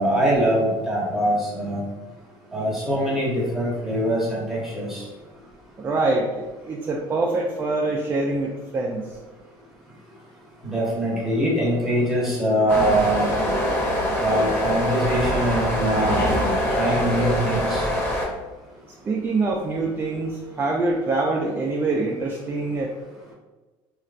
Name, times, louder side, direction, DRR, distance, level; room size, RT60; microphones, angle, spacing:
voice 1, 0.0-1.8 2.5-5.0 10.6-13.3 14.2-16.3 16.7-17.9, right 1 dB, 5° right, -5 dB, 1.0 m, -23 dB
voice 2, 5.8-9.0 19.1-22.9, right 3 dB, 20° right, -1 dB, 0.3 m, -25 dB
sound 1, 12.7-18.3, equal, 20° left, 0.7 m, -24 dB
3.1 x 2.4 x 2.4 m, 1.2 s
cardioid pair, 115°, 10 cm